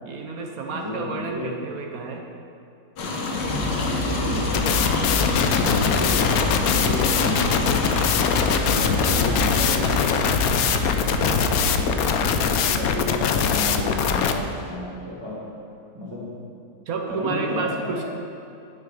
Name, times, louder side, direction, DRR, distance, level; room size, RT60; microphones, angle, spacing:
voice 1, 0.0-2.2 4.3-4.4 6.6-6.8 11.3-11.4 13.9-14.2 16.9-18.0, right 4 dB, 60° right, 2 dB, 1.2 m, -31 dB
voice 2, 0.8-1.4 3.3-7.9 8.6-10.1 11.2-15.4 15.9-16.3 17.1-18.0, left 1 dB, 15° right, -7 dB, 1.7 m, -32 dB
sound 1, 3.0-14.7, left 2 dB, 90° left, 1.7 m, -30 dB
sound 2, 3.4-11.7, left 1 dB, 45° left, 2.3 m, -29 dB
sound 3, 4.5-14.3, left 7 dB, 70° left, 1.0 m, -22 dB
10.5 x 6.6 x 5.0 m, 2.7 s
omnidirectional pair, 1.8 m